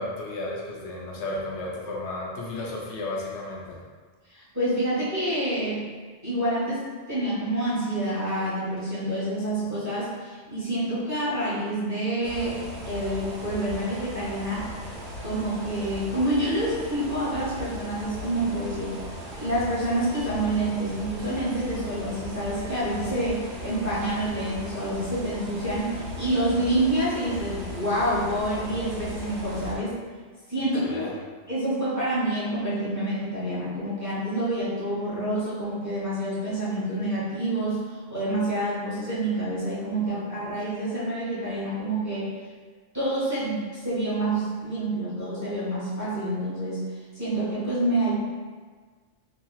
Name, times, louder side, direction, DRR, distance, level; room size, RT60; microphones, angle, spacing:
voice 1, 0.0-3.8 30.8-31.1, left 2 dB, 75° left, -3 dB, 0.9 m, -33 dB
voice 2, 4.3-5.8 6.2-6.8 7.1-12.6 12.8-14.7 15.2-19.0 19.4-30.0 30.5-31.1 31.5-42.3 42.9-46.8 47.1-48.1, right 1 dB, 15° right, -12 dB, 1.0 m, -27 dB
sound 1, 12.2-29.8, equal, 70° right, 1.0 m, -37 dB
2.9 x 2.8 x 2.3 m, 1.5 s
omnidirectional pair, 1.2 m